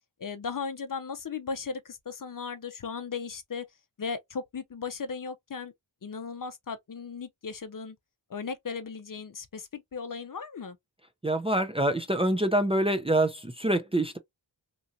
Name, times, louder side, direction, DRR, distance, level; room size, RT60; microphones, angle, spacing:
voice 1, 0.2-3.6 4.0-5.7 6.0-8.0 8.3-10.8, left 5 dB, 45° left, 0.6 m, -36 dB
voice 2, 11.2-14.2, right 1 dB, 15° right, 0.5 m, -26 dB
3.0 x 2.4 x 2.7 m
cardioid pair, 40°, 46 cm